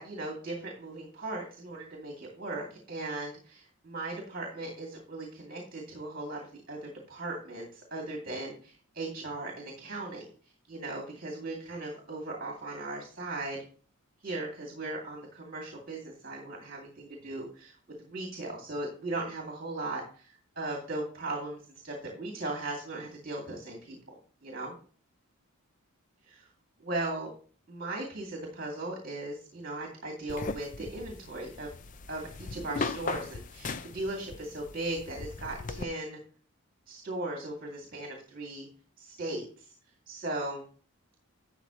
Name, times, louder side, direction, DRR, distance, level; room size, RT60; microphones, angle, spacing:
voice 1, 0.0-10.3 10.7-13.6 14.2-21.6 21.8-24.0 24.4-24.8 26.4-26.5 26.8-27.3 27.7-31.7 32.1-36.2 36.9-38.7 39.0-39.7 40.1-40.6, right 2 dB, 40° right, -1 dB, 2.4 m, -38 dB
sound 1, 30.3-35.8, left 4 dB, 35° left, 0.4 m, -38 dB
12.0 x 6.9 x 3.0 m, 0.43 s
head